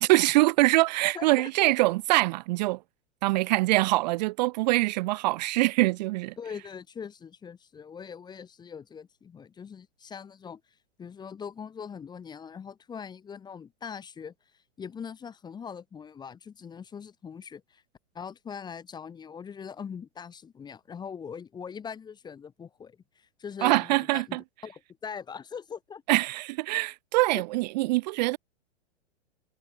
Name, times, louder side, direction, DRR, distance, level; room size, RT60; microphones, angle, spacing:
voice 1, 0.0-2.8 3.2-6.3 23.6-24.4 26.1-28.4, right 20 dB, 40° right, 0.5 m, -24 dB
voice 2, 1.1-1.7 6.4-10.6 11.0-14.3 14.8-17.8 18.1-26.0 27.3-27.4, left 6 dB, 10° left, 0.8 m, -41 dB
hypercardioid pair, 120°, 34 cm